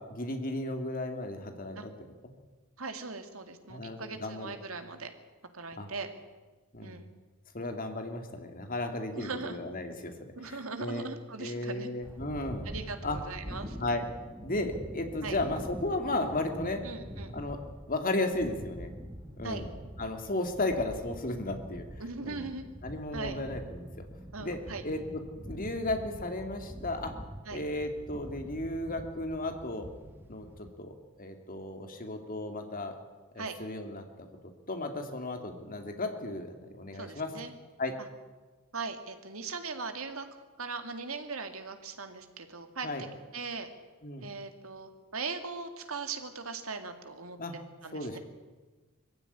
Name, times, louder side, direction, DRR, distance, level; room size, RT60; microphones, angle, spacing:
voice 1, 0.1-1.9 3.7-4.5 5.8-5.9 6.7-7.1 7.5-10.1 10.4-11.1 11.4-12.7 13.0-13.2 13.8-14.0 14.4-16.8 17.3-17.6 17.9-18.9 19.4-19.7 20.0-21.9 22.2-22.5 22.8-24.0 24.4-25.2 25.5-27.1 27.5-29.9 30.3-30.5 30.8-30.9 31.2-32.9 33.3-34.3 34.7-37.3 37.8-37.9 42.8-43.0 44.0-44.3 47.4-47.5 47.9-48.2, left 2 dB, 40° left, 5 dB, 2.6 m, -34 dB
voice 2, 2.8-5.1 5.5-6.1 6.8-7.1 9.2-9.6 10.3-11.9 12.6-13.8 15.2-15.4 16.8-17.3 19.4-19.6 22.0-22.6 23.1-23.4 24.3-24.8 27.5-27.6 33.4-33.6 36.9-37.5 38.7-40.3 40.6-42.9 43.3-43.7 44.2-47.4 47.8-48.2, right 4 dB, 75° right, 7 dB, 2.4 m, -39 dB
sound 1, 12.0-30.7, equal, 10° right, 1.4 m, -44 dB
22.0 x 15.5 x 10.0 m, 1.3 s
head